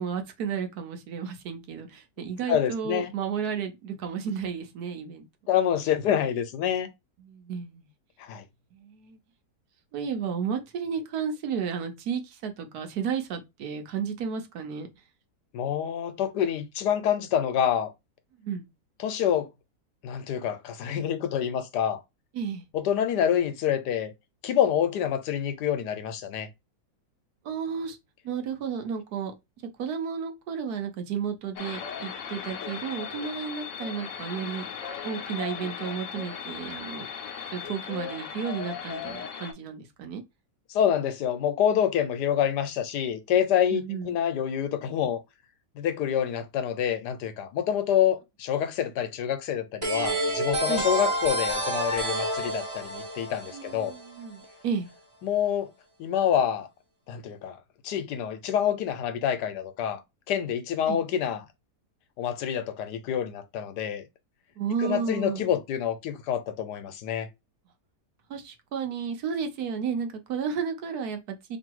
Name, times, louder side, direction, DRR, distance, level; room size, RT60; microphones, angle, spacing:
voice 1, 0.0-5.3 7.2-7.9 8.7-9.2 9.9-14.9 18.4-18.6 22.3-22.6 27.4-28.0 28.2-29.3 29.8-34.6 35.0-37.0 37.5-40.2 43.7-44.2 50.7-50.8 53.5-54.9 60.9-61.0 64.6-65.5 68.3-71.6, right 6 dB, 70° right, 1.3 m, -32 dB
voice 2, 2.5-3.1 5.5-6.9 8.2-8.4 15.5-17.9 19.0-19.5 20.0-22.0 22.7-24.1 24.4-26.5 40.7-45.2 45.7-53.9 55.2-55.7 56.0-56.7 57.1-57.6 57.8-60.0 60.3-61.4 62.2-64.0 64.8-67.3, left 9 dB, 85° left, 1.3 m, -27 dB
sound 1, 31.6-39.5, left 7 dB, 60° left, 0.9 m, -37 dB
sound 2, 49.8-54.4, right 1 dB, 20° right, 1.0 m, -29 dB
3.0 x 2.7 x 4.5 m
omnidirectional pair, 1.8 m